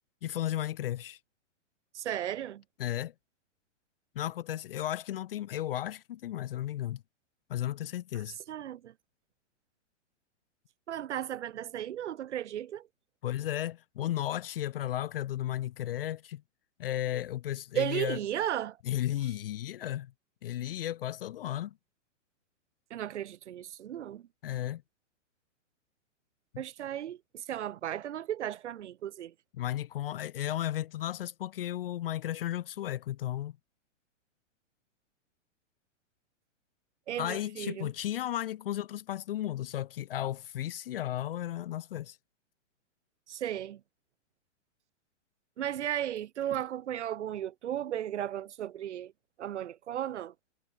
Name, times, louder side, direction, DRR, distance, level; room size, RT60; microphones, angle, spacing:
voice 1, 0.2-1.2 2.8-3.1 4.2-7.0 7.5-8.4 13.2-16.4 16.8-18.2 18.9-20.1 20.4-21.7 24.4-24.8 26.5-26.6 29.6-33.6 37.2-42.2, left 12 dB, 50° left, 0.5 m, -34 dB
voice 2, 1.9-2.6 8.1-8.9 10.9-12.9 17.7-18.8 22.9-24.3 26.6-29.3 37.1-37.9 43.3-43.8 45.6-49.1 49.4-50.3, right 11 dB, 65° right, 2.5 m, -35 dB
hypercardioid pair, 165°, 38 cm